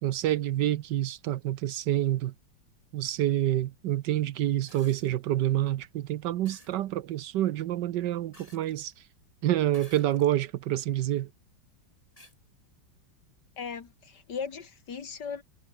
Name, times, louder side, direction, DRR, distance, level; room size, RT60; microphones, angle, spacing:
voice 1, 0.0-2.3 2.9-8.9 9.4-11.3, right 13 dB, 70° right, 1.2 m, -27 dB
sound 1, 4.7-5.2 6.5-6.8 8.3-9.0 9.7-10.4 11.1-11.2 12.2-12.4 13.8-13.9, left 1 dB, 15° left, 6.3 m, -54 dB
voice 2, 13.6-15.4, left 6 dB, 60° left, 2.5 m, -37 dB
omnidirectional pair, 2.1 m